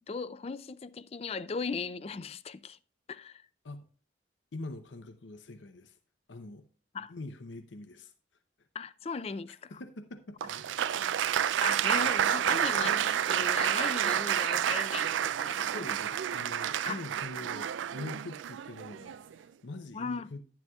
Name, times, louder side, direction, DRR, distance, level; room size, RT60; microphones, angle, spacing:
voice 1, 0.1-2.8 3.1-3.5 6.9-7.1 8.7-9.8 11.6-15.9 16.8-17.0 19.9-20.3, left 5 dB, 35° left, 0.4 m, -38 dB
voice 2, 4.5-6.0 6.3-6.7 7.1-8.1 9.7-10.7 15.6-20.4, left 2 dB, 85° left, 0.7 m, -44 dB
Applause, 10.4-19.3, right 10 dB, 90° right, 0.3 m, -29 dB
11.0 x 10.5 x 2.3 m
head